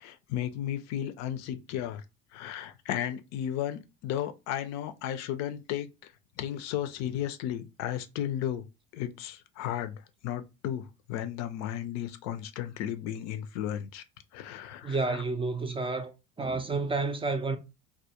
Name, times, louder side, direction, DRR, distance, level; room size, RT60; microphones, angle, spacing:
voice 1, 0.0-2.0 2.3-8.7 8.9-14.0 14.3-15.2, left 11 dB, 60° left, 0.5 m, -34 dB
voice 2, 14.8-16.1 16.4-17.6, right 3 dB, 20° right, 0.4 m, -30 dB
2.2 x 2.1 x 2.8 m
hypercardioid pair, 70°, 31 cm